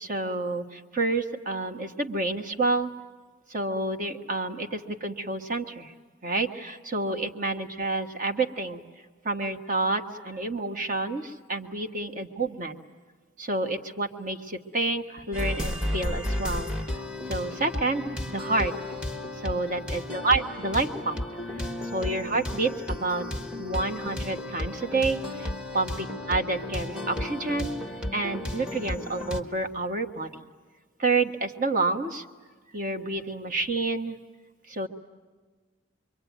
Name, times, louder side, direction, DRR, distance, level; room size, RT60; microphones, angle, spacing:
voice 1, 0.0-2.9 3.5-5.9 6.2-8.8 9.2-12.8 13.4-17.0 17.3-18.7 19.3-21.2 21.5-27.7 28.1-30.4 31.0-32.2 32.7-34.2 34.7-34.9, right 3 dB, 40° right, 5 dB, 1.6 m, -29 dB
sound 1, 15.3-29.4, left 1 dB, 5° right, 1.4 m, -33 dB
26.5 x 23.5 x 9.4 m, 1.4 s
head